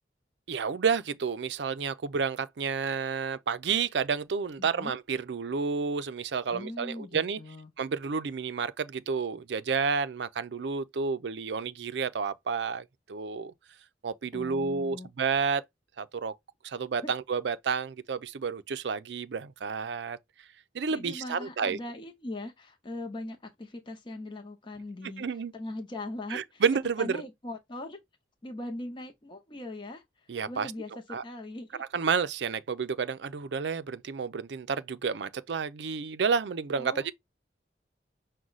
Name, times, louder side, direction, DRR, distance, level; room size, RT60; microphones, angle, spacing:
voice 1, 0.5-7.4 7.8-13.5 14.0-15.6 16.0-16.3 16.6-20.2 20.7-21.8 25.2-25.5 26.3-27.2 30.3-30.7 31.1-31.2 31.8-37.1, right 5 dB, 75° right, 0.5 m, -30 dB
voice 2, 4.6-5.0 6.5-7.7 14.3-15.1 17.0-17.1 20.9-25.2 25.5-26.6 27.0-28.0 28.4-31.8 36.8-37.1, left 1 dB, 30° left, 0.7 m, -40 dB
6.1 x 2.2 x 3.9 m
head